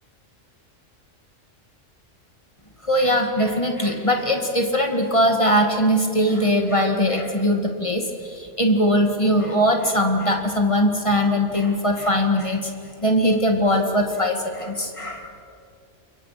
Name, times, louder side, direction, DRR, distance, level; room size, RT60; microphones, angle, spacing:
voice 1, 2.9-8.0 8.3-12.7 13.0-15.3, equal, 25° left, 4 dB, 2.2 m, -21 dB
29.0 x 23.0 x 6.0 m, 2.4 s
omnidirectional pair, 1.3 m